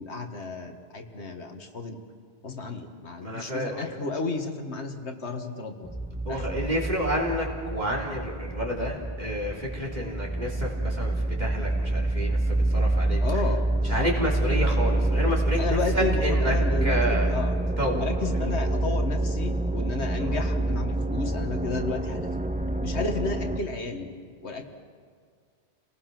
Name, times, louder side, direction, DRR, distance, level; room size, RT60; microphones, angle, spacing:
voice 1, 0.0-2.0 2.4-5.9 6.3-6.4 13.2-14.1 15.6-17.6 17.9-22.3 22.8-24.7, left 3 dB, 80° left, 4 dB, 2.0 m, -32 dB
voice 2, 3.2-3.8 6.3-13.2 13.8-16.5 16.8-17.3 17.8-18.1 20.2-20.4, equal, 40° right, -2 dB, 3.6 m, -30 dB
sound 1, 5.8-23.6, right 2 dB, 10° right, 0.7 m, -27 dB
29.5 x 19.0 x 6.0 m, 2.1 s
omnidirectional pair, 1.1 m